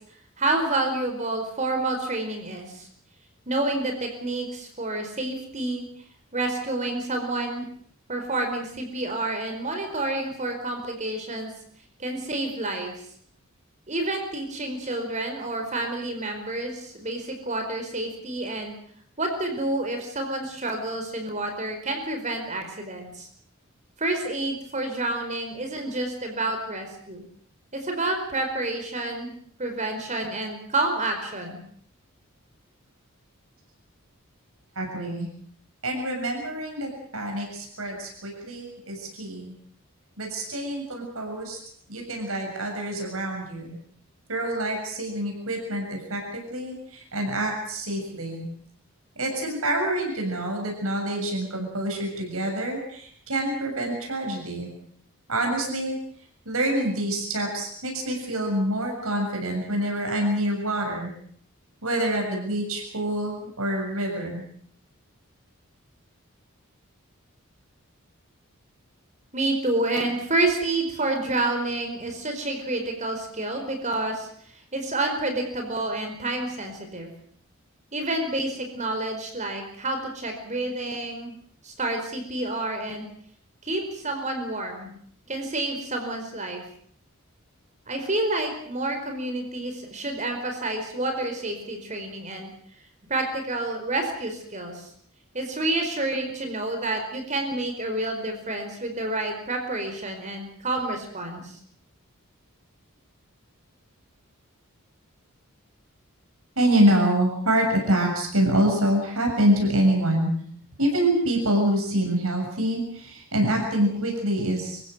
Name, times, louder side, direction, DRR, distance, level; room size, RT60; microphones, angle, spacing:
voice 1, 0.4-2.9 3.5-5.9 6.3-7.7 8.1-11.5 12.0-13.0 13.9-18.8 19.2-23.3 24.0-27.3 27.8-31.6 69.3-74.3 74.7-77.1 77.9-81.4 81.6-83.1 83.6-84.9 85.3-86.6 87.9-92.5 93.1-94.9 95.3-101.5, right 2 dB, 35° right, 4 dB, 4.7 m, -29 dB
voice 2, 34.8-35.3 35.8-39.5 40.2-41.6 41.9-43.8 44.3-48.5 49.2-54.7 55.3-56.0 56.5-61.1 61.8-64.4 106.6-110.3 110.8-114.8, right 1 dB, 80° right, 2 dB, 7.2 m, -26 dB
27.0 x 16.0 x 8.1 m, 0.62 s
head